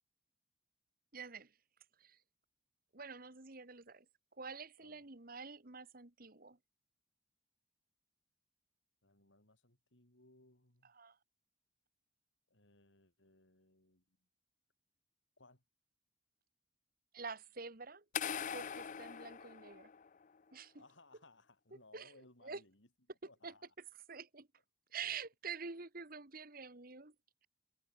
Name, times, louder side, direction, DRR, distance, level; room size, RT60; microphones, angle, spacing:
voice 1, 1.1-1.5 2.0-2.2 2.9-4.1 4.4-6.6 10.9-11.2 17.1-18.0 18.5-19.9 20.5-20.7 21.9-22.1 22.4-22.6 23.4-23.5 24.1-24.5 24.9-27.1, right 5 dB, 50° right, 1.9 m, -47 dB
voice 2, 4.8-5.1 9.0-10.9 12.5-14.2 15.4-15.6 20.7-22.9 23.3-23.7 25.0-25.2, left 2 dB, 80° left, 7.5 m, -65 dB
sound 1, 18.1-20.2, left 8 dB, 40° left, 0.5 m, -42 dB
head